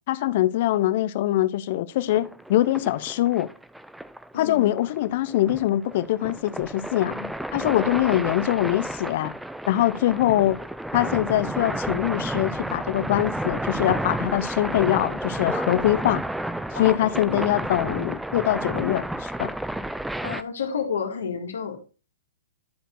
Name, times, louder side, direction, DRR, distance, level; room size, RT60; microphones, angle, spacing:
voice 1, 0.1-3.5 4.3-9.3 9.7-10.6 10.9-16.2 16.7-19.5, left 14 dB, 55° left, 0.6 m, -23 dB
sound 1, 2.1-20.4, right 1 dB, 5° right, 0.4 m, -31 dB
voice 2, 4.3-4.7 16.7-17.6 20.2-21.8, left 6 dB, 80° left, 2.0 m, -31 dB
10.5 x 4.6 x 3.9 m
hypercardioid pair, 125°, 0 cm